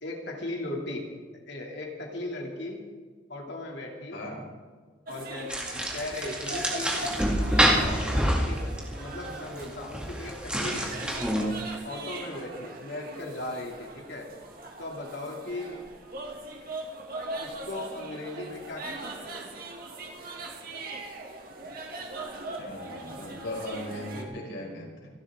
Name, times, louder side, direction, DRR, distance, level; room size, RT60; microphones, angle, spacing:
voice 1, 0.0-1.1 1.5-2.8 3.3-4.2 5.1-7.0 7.4-8.7 9.0-11.2 11.8-14.3 14.8-15.8 17.4-19.2, left 2 dB, 65° left, 0 dB, 2.8 m, -37 dB
sound 1, 5.1-24.2, right 2 dB, 50° right, 2.3 m, -40 dB
sound 2, 5.5-11.4, equal, 5° right, 2.2 m, -27 dB
voice 2, 22.6-25.1, left 1 dB, 85° left, -2 dB, 5.8 m, -38 dB
28.0 x 12.0 x 3.8 m, 1.5 s
head